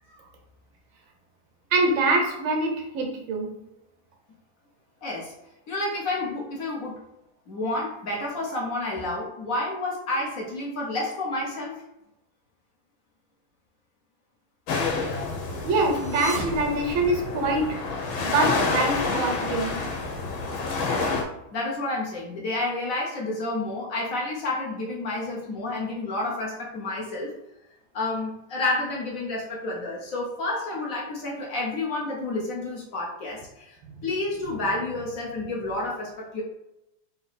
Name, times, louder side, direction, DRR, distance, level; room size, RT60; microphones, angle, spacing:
voice 1, 1.7-3.5 15.6-17.7 18.2-19.8, right 2 dB, 85° right, 2 dB, 1.7 m, -24 dB
voice 2, 5.0-5.3 5.7-7.0 7.5-11.7 21.5-27.3 27.9-33.8 34.0-36.4, left 2 dB, 55° left, -3 dB, 1.0 m, -30 dB
sound 1, 14.7-21.2, left 3 dB, 85° left, 1.7 m, -28 dB
sound 2, 15.9-17.7, right 1 dB, 65° right, 0.5 m, -38 dB
4.0 x 2.8 x 4.1 m, 0.89 s
omnidirectional pair, 2.1 m